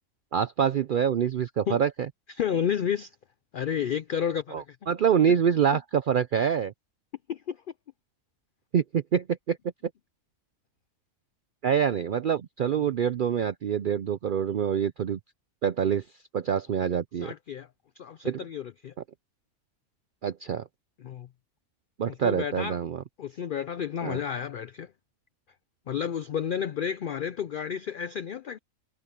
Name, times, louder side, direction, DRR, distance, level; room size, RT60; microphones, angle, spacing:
voice 1, 0.3-2.1 4.5-6.7 8.7-9.6 11.6-15.2 15.6-16.0 16.3-17.3 18.2-18.4 20.2-20.6 22.0-23.0 24.0-24.2, right 8 dB, 75° right, 0.4 m, -26 dB
voice 2, 2.3-3.2 3.5-4.8 7.3-7.6 12.8-12.9 17.2-17.7 18.0-18.9 21.0-21.3 22.1-22.8 23.2-24.9 25.9-28.6, left 8 dB, 90° left, 0.4 m, -31 dB
omnidirectional pair, 1.5 m